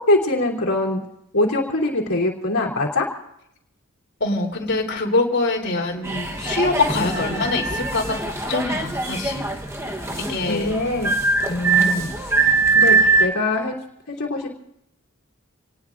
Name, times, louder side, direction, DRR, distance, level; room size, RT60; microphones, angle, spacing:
voice 1, 0.1-1.0 1.3-3.1 10.5-11.1 11.5-12.3 12.7-13.8 14.1-14.5, left 2 dB, 85° left, -2 dB, 3.1 m, -23 dB
voice 2, 4.2-9.4 10.3-10.8 11.7-12.1, left 3 dB, 55° left, -2 dB, 3.3 m, -24 dB
sound 1, 6.0-13.3, right 3 dB, 15° right, 1.1 m, -22 dB
28.5 x 19.5 x 2.6 m, 0.77 s
head